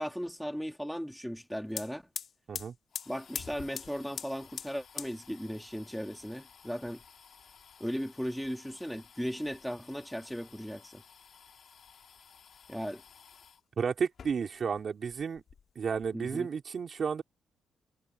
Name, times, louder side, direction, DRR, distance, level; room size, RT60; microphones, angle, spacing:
voice 1, 0.0-2.0 3.1-7.0 7.8-11.0 12.7-13.0 16.1-16.5, equal, ahead, 1.7 m, -37 dB
sound 1, 1.4-1.5 1.7-13.6 14.1-14.8 15.1-16.1, left 7 dB, 55° left, 2.8 m, -47 dB
voice 2, 13.8-15.4 15.8-17.2, right 6 dB, 45° right, 3.6 m, -32 dB
cardioid pair, 125°, 0 cm